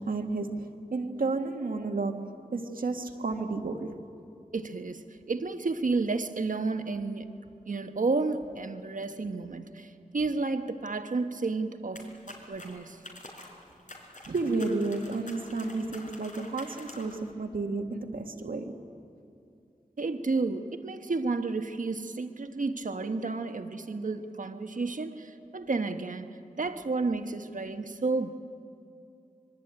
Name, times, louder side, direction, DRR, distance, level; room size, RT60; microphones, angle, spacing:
voice 1, 0.0-3.9 14.3-18.8, right 3 dB, 85° right, 1.8 m, -32 dB
voice 2, 4.5-7.3 7.7-13.1 20.0-28.3, right 3 dB, 65° right, 1.4 m, -31 dB
sound 1, 12.0-17.3, left 2 dB, 65° left, 4.5 m, -48 dB
25.5 x 22.5 x 9.0 m
wide cardioid pair, 65°, 14 cm